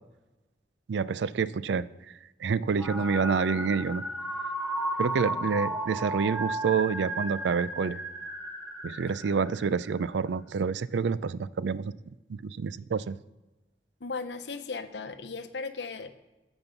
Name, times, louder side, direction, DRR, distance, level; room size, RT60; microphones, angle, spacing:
voice 1, 0.9-1.9 2.4-4.0 5.0-8.0 8.8-11.9 12.3-13.2, right 5 dB, 85° right, 17 dB, 0.4 m, -28 dB
sound 1, 2.8-10.1, right 1 dB, ahead, 1.0 m, -34 dB
voice 2, 14.0-16.2, left 4 dB, 80° left, 9 dB, 0.8 m, -36 dB
8.8 x 6.1 x 7.0 m, 1.1 s
head